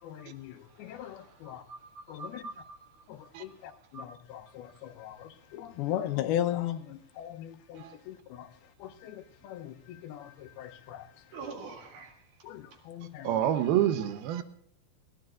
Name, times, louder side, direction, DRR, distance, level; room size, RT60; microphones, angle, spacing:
voice 1, 0.0-1.6 2.1-2.4 3.1-8.5 8.8-11.4 12.4-13.5, left 12 dB, 85° left, 2.8 m, -38 dB
voice 2, 1.0-1.3 1.7-2.8 3.9-4.0 11.3-12.1, right 4 dB, 60° right, 3.2 m, -44 dB
voice 3, 13.2-14.4, right 11 dB, 85° right, 2.8 m, -27 dB
21.5 x 16.0 x 2.5 m
omnidirectional pair, 4.3 m